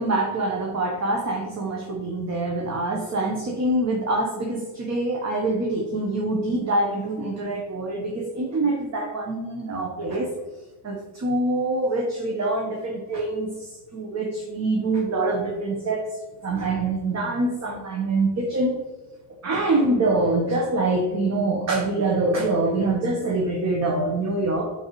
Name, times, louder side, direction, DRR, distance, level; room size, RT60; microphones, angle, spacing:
voice 1, 0.0-10.3 10.8-16.0 16.4-18.8 19.4-24.6, right 2 dB, 35° right, 1 dB, 1.2 m, -25 dB
6.4 x 6.4 x 3.1 m, 1.3 s
supercardioid pair, 100°, 48 cm